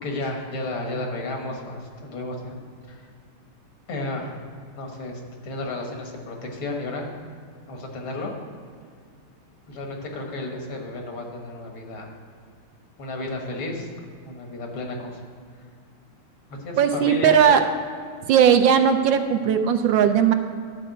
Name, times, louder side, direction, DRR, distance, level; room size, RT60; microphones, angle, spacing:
voice 1, 0.0-2.6 2.9-3.0 3.9-4.3 4.8-7.1 7.7-8.3 9.7-12.1 13.0-13.9 14.2-15.2 16.5-17.4, left 2 dB, 85° left, 1 dB, 2.4 m, -32 dB
voice 2, 16.8-17.6 18.3-20.3, right 8 dB, 75° right, 7 dB, 1.3 m, -18 dB
11.5 x 4.8 x 7.9 m, 2.2 s
omnidirectional pair, 2.3 m